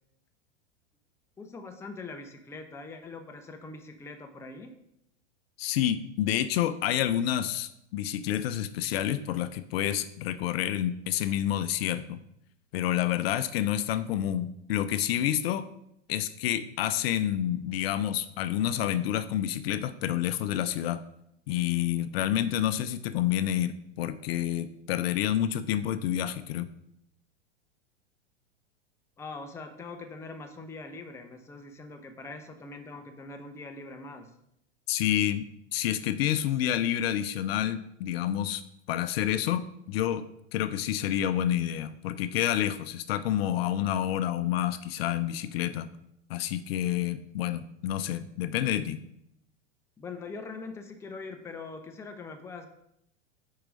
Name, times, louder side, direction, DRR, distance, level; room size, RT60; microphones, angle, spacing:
voice 1, 1.4-4.7 29.2-34.3 50.0-52.7, left 3 dB, 10° left, 6 dB, 0.5 m, -42 dB
voice 2, 5.6-12.2 12.7-15.7 16.1-21.0 21.5-26.7 34.9-35.4 35.7-38.6 38.9-45.9 46.3-49.0, left 11 dB, 55° left, 12 dB, 0.5 m, -29 dB
4.7 x 4.6 x 5.1 m, 0.76 s
hypercardioid pair, 105°, 36 cm